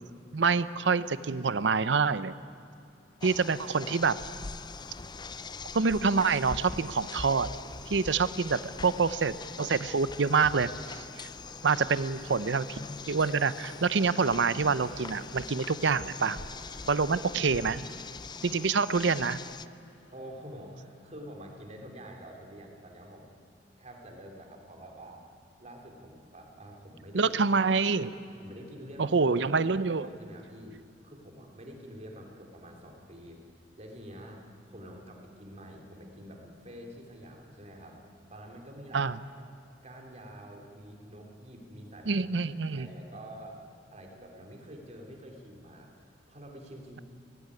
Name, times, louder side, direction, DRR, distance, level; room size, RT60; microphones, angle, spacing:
voice 1, 0.3-2.3 3.2-4.4 5.7-7.5 7.9-11.3 11.6-12.8 13.1-16.4 16.9-17.9 18.4-19.4 27.1-28.1 29.0-30.1 38.9-39.2 42.1-42.9, right 5 dB, 70° right, 15 dB, 0.6 m, -26 dB
Train, 2.7-21.3, left 2 dB, 85° left, 2.0 m, -55 dB
sound 1, 3.2-19.7, left 4 dB, 25° left, 0.5 m, -43 dB
voice 2, 8.5-9.0 18.2-18.5 20.1-23.3 23.8-25.2 25.6-27.3 28.4-29.3 29.7-30.8 31.0-38.0 38.3-39.1 39.8-42.4 42.7-43.6 43.9-47.0, equal, 40° right, 1 dB, 3.2 m, -47 dB
18.0 x 15.5 x 9.7 m, 2.5 s
head